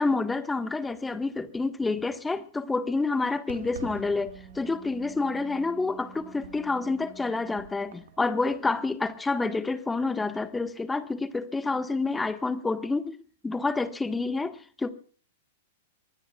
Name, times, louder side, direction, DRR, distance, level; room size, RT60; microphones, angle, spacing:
voice 1, 0.0-13.2 13.4-14.9, left 3 dB, 10° left, 1.5 m, -28 dB
Fireworks, 3.5-8.5, right 8 dB, 60° right, 2.0 m, -49 dB
Wind instrument woodwind instrument, 3.6-7.7, right 5 dB, 15° right, 4.5 m, -50 dB
24.0 x 20.0 x 2.4 m
figure-of-eight pair, 100°, 0 cm